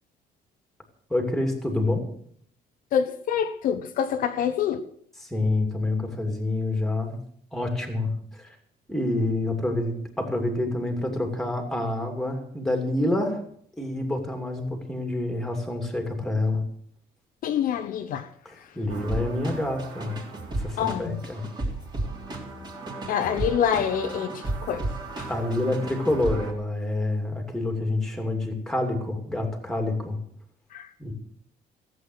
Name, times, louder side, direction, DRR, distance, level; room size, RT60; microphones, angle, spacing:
voice 1, 1.1-2.0 5.1-7.2 7.5-8.6 8.9-13.4 13.8-16.6 18.4-20.2 20.6-21.4 25.3-30.2 31.0-31.1, left 2 dB, 5° left, 4 dB, 2.6 m, -27 dB
voice 2, 2.9-4.8 17.4-18.2 20.8-21.0 23.1-24.3 24.7-24.8, left 8 dB, 60° left, 7 dB, 0.9 m, -25 dB
sound 1, 18.9-26.5, right 2 dB, 25° right, 3.3 m, -34 dB
15.5 x 8.3 x 7.9 m, 0.62 s
cardioid pair, 165°, 16 cm